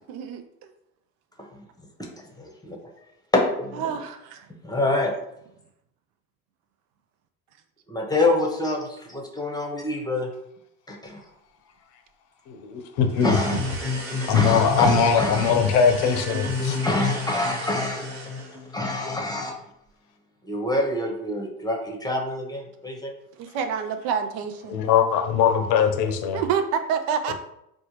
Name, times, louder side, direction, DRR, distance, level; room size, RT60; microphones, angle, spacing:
voice 1, 0.1-0.7 3.8-4.5 23.4-24.8 26.3-27.3, right 7 dB, 70° right, 0.6 m, -28 dB
voice 2, 2.4-2.8 3.3-3.8 4.6-5.1 7.9-10.3 10.9-11.2 13.2-15.7 16.0-19.6 20.4-23.1, left 2 dB, 10° left, 0.8 m, -26 dB
voice 3, 12.5-13.4 14.3-16.8 24.7-26.4 27.3-27.4, left 7 dB, 70° left, 0.7 m, -21 dB
sound 1, 13.1-18.7, right 3 dB, 30° right, 1.2 m, -37 dB
4.3 x 2.1 x 3.0 m
hypercardioid pair, 75°, 44 cm